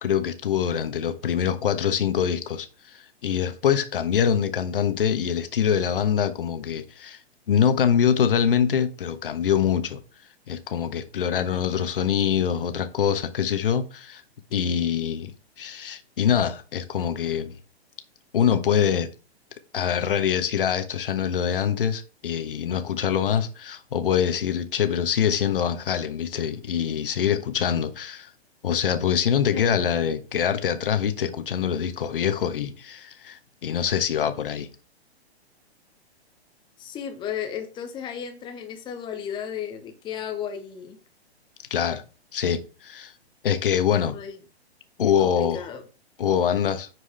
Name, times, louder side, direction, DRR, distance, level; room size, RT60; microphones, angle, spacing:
voice 1, 0.0-7.2 7.5-10.0 10.5-14.2 14.5-17.5 18.3-19.1 19.7-28.3 28.6-34.7 41.7-42.0 42.3-43.1 43.4-44.2 45.0-45.6 46.2-46.9, left 8 dB, 55° left, 1.2 m, -24 dB
voice 2, 36.8-41.0 44.1-44.3 45.2-45.8, left 8 dB, 15° left, 1.0 m, -34 dB
10.0 x 4.8 x 3.4 m
figure-of-eight pair, 115°, 33 cm